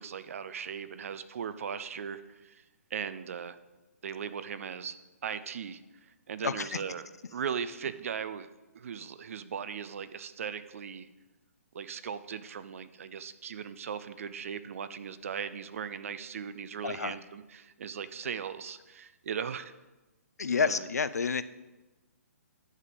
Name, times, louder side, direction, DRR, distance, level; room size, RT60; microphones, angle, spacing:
voice 1, 0.0-2.6 2.9-3.6 4.0-5.0 5.2-7.0 7.3-8.5 8.7-11.1 11.7-19.7 20.6-20.8, right 7 dB, 60° right, 13 dB, 0.5 m, -38 dB
voice 2, 6.4-6.8 16.8-17.2 20.4-21.4, left 5 dB, 80° left, 14 dB, 0.4 m, -29 dB
9.8 x 3.6 x 6.5 m, 1.1 s
figure-of-eight pair, 135°, 9 cm